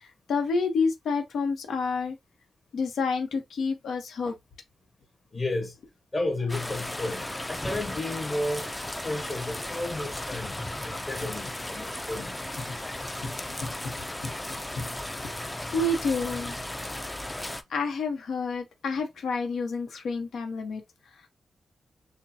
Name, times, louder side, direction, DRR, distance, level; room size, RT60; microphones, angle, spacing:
voice 1, 0.0-2.2 2.7-4.3 12.7-12.8 13.2-13.3 13.6-14.0 14.2-14.3 14.8-14.9 15.2-15.4 15.7-16.5 17.0-17.1 17.7-20.8, left 3 dB, 90° left, 1.0 m, -29 dB
voice 2, 5.3-5.8 6.1-8.7 9.0-12.4, left 2 dB, 25° left, 1.1 m, -32 dB
sound 1, 6.5-17.6, left 1 dB, 10° left, 0.4 m, -35 dB
6.6 x 2.2 x 2.7 m
wide cardioid pair, 165°, 0 cm